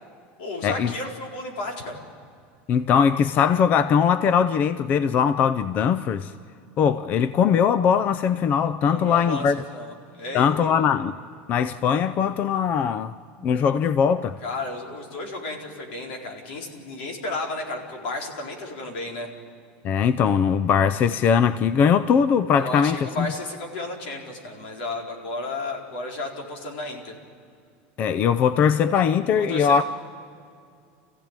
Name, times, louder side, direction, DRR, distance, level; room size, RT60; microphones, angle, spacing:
voice 1, 0.4-2.0 8.9-10.7 14.4-19.3 22.6-27.2 29.3-29.8, left 2 dB, 85° left, 4.3 m, -33 dB
voice 2, 2.7-6.3 6.8-9.6 10.3-11.2 11.5-13.1 13.4-14.4 19.8-23.3 28.0-29.8, left 7 dB, 30° left, 0.5 m, -20 dB
27.5 x 15.5 x 9.0 m
supercardioid pair, 165°, 6 cm